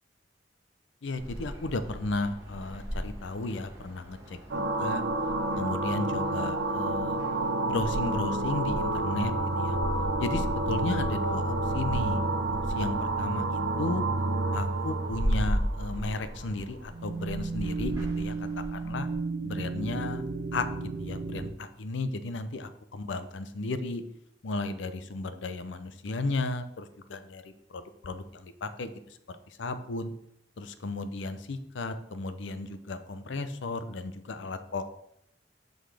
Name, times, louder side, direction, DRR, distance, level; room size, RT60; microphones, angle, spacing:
voice 1, 1.0-5.0 5.6-7.2 7.7-9.8 10.2-12.2 12.7-14.0 14.5-19.1 19.4-20.2 20.5-20.7 21.0-24.0 24.4-29.2 29.5-30.1 30.6-34.8, left 2 dB, 70° left, 11 dB, 0.5 m, -34 dB
sound 1, 1.2-19.1, equal, 20° right, 1.7 m, -37 dB
sound 2, 4.5-16.5 16.9-21.5, right 2 dB, 65° right, 0.7 m, -30 dB
11.0 x 4.0 x 3.4 m, 0.77 s
head